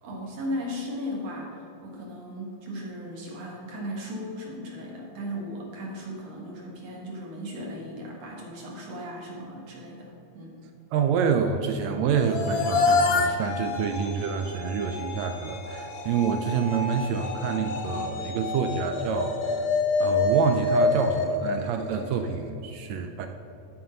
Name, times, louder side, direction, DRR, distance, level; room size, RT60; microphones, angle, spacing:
voice 1, 0.0-10.5, equal, 60° right, -2 dB, 2.7 m, -36 dB
voice 2, 10.9-19.7 20.0-23.3, right 6 dB, 80° right, 6 dB, 1.7 m, -27 dB
sound 1, 12.1-22.3, left 3 dB, 80° left, 1.1 m, -27 dB
13.0 x 4.7 x 5.4 m, 2.9 s
omnidirectional pair, 3.4 m